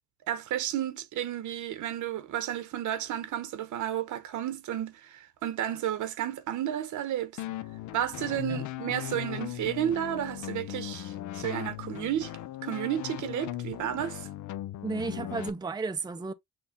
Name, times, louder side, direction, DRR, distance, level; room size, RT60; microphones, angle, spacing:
voice 1, 0.3-7.3 7.9-12.3 12.6-14.3, right 11 dB, 75° right, 1.0 m, -32 dB
sound 1, 7.4-15.5, left 13 dB, 75° left, 0.6 m, -38 dB
voice 2, 14.8-16.3, right 4 dB, 15° right, 0.5 m, -33 dB
6.1 x 2.3 x 3.7 m
cardioid pair, 90°, 30 cm